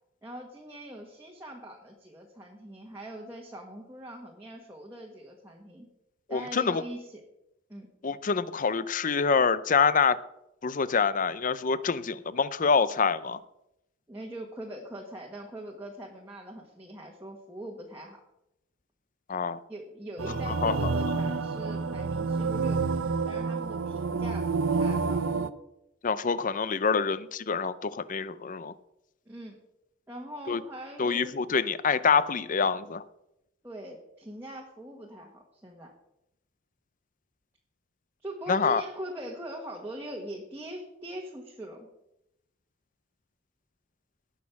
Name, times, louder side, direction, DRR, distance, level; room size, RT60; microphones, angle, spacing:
voice 1, 0.2-5.9 6.3-7.2 7.7-7.9 14.1-18.2 19.7-22.8 23.2-25.2 29.2-29.6 30.1-31.4 33.6-35.9 38.2-41.9, right 1 dB, 10° right, -2 dB, 1.5 m, -42 dB
voice 2, 6.3-6.8 8.0-10.2 10.6-13.4 19.3-19.6 20.5-20.9 26.0-28.7 30.5-30.6 31.0-33.0 38.5-38.8, left 5 dB, 40° left, 15 dB, 0.6 m, -26 dB
sound 1, 20.2-25.5, right 4 dB, 75° right, 0.6 m, -28 dB
18.0 x 6.4 x 5.9 m, 0.85 s
head